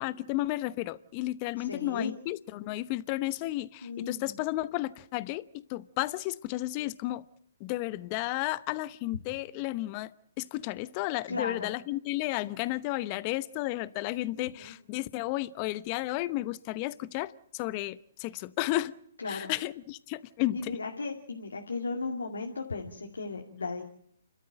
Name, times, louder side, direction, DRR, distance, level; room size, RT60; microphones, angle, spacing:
voice 1, 0.0-5.4 5.7-7.2 7.6-10.1 10.4-18.9 19.3-20.8, left 17 dB, 35° left, 0.9 m, -33 dB
voice 2, 1.6-2.1 3.8-4.4 11.3-11.7 14.4-14.7 19.2-19.5 20.5-23.8, left 3 dB, 85° left, 2.5 m, -36 dB
29.5 x 13.0 x 8.9 m
hypercardioid pair, 130°, 0 cm